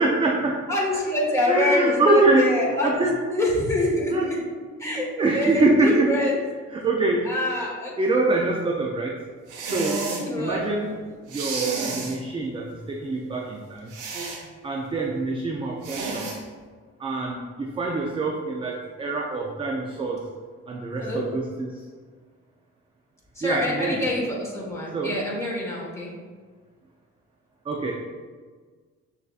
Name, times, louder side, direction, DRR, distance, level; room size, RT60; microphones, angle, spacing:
voice 1, 0.0-0.6 1.5-2.5 2.8-3.2 4.1-4.3 4.8-6.2 6.7-7.3 8.0-9.2 9.7-10.1 10.4-11.0 11.3-13.9 14.6-16.4 17.0-20.2 20.7-21.8 23.4-24.0 24.9-25.2 27.7-27.9, right 2 dB, 20° right, -1 dB, 0.4 m, -24 dB
voice 2, 0.7-4.4 4.8-5.1 5.3-6.4 7.2-7.9 10.2-10.7 21.0-21.2 23.3-26.1, left 1 dB, 10° left, -6 dB, 1.5 m, -25 dB
sound 1, 9.5-10.3 11.3-12.2 13.9-14.4 15.8-16.4, right 3 dB, 90° right, 0.9 m, -31 dB
6.4 x 2.7 x 2.4 m, 1.5 s
cardioid pair, 90°, 30 cm